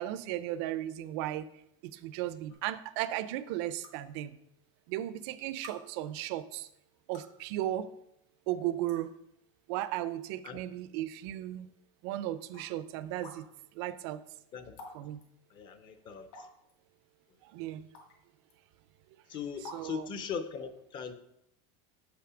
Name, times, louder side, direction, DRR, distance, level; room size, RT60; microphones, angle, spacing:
voice 1, 0.0-1.5 1.8-4.4 4.9-6.7 7.1-7.9 8.5-9.1 9.7-11.7 12.0-13.4 13.7-14.2 14.9-15.2 17.4-17.9 19.6-20.1, right 13 dB, 50° right, 13 dB, 0.4 m, -35 dB
sound 1, 2.5-2.6 3.8-3.9 4.9-5.0 5.6-5.8 6.9-7.4 8.3-8.4 8.9-9.0 9.7-10.0 10.5-10.6 11.6-11.7 12.5-12.7 13.2-13.4 14.8-15.0 15.2-15.3 16.3-16.7 17.9-18.1 18.5-18.6 19.6-19.8, left 3 dB, 50° left, 1.9 m, -48 dB
voice 2, 15.5-16.3 19.3-21.1, left 6 dB, 25° left, 10 dB, 0.6 m, -39 dB
6.8 x 5.8 x 4.9 m, 0.77 s
supercardioid pair, 170°, 17 cm